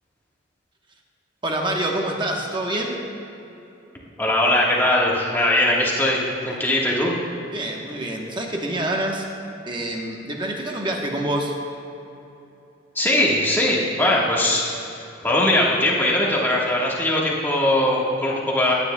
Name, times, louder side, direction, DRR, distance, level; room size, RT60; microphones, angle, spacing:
voice 1, 1.4-3.0 7.5-9.3 9.7-11.5, right 1 dB, 25° right, 1 dB, 1.0 m, -26 dB
voice 2, 4.2-7.2 12.9-18.7, left 1 dB, 10° left, -4 dB, 1.3 m, -20 dB
16.5 x 9.8 x 2.2 m, 2.9 s
head